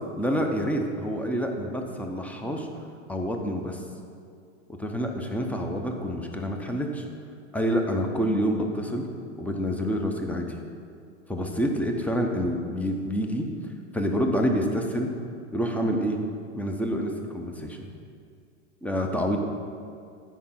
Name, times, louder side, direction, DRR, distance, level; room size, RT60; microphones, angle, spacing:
voice 1, 0.2-2.7 3.1-3.8 4.7-7.1 7.5-9.1 9.4-10.5 11.3-13.5 13.9-15.1 15.5-16.2 16.5-17.8 18.8-19.4, equal, 5° left, 2 dB, 0.7 m, -27 dB
9.3 x 5.0 x 5.7 m, 2.3 s
hypercardioid pair, 120°, 37 cm